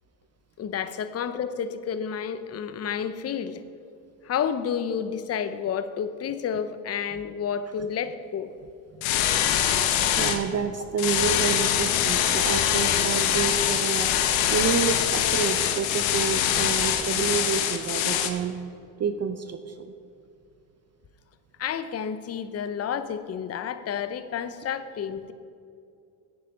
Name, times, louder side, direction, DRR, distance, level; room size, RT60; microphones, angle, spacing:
voice 1, 0.6-3.6 4.2-8.5 21.6-25.3, left 7 dB, 30° left, 12 dB, 0.7 m, -30 dB
sound 1, 9.0-10.4 11.0-18.3, left 10 dB, 70° left, 1.2 m, -24 dB
voice 2, 10.2-14.2 14.5-18.6 19.0-19.9, right 6 dB, 30° right, 9 dB, 0.6 m, -29 dB
11.0 x 8.4 x 5.2 m, 2.4 s
supercardioid pair, 80°, 50 cm